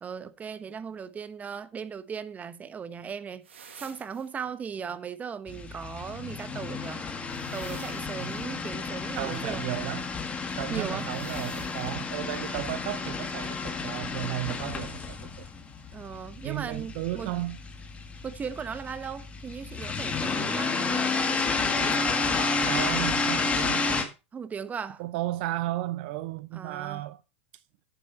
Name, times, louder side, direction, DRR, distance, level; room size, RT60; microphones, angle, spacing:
voice 1, 0.0-3.5 3.8-7.1 7.5-9.6 10.7-11.1 15.9-17.3 18.2-22.3 24.3-25.1 26.5-27.0, right 6 dB, 25° right, 1.0 m, -38 dB
sound 1, 3.4-4.3 7.2-8.5 11.1-12.0, right 6 dB, 85° right, 1.7 m, -50 dB
sound 2, 5.5-24.0, left 4 dB, 20° left, 1.9 m, -31 dB
voice 2, 9.2-10.1 10.6-15.5 16.4-17.6 22.7-24.1 25.0-27.2, right 16 dB, 60° right, 0.6 m, -34 dB
8.5 x 8.0 x 4.3 m
hypercardioid pair, 95°, 6 cm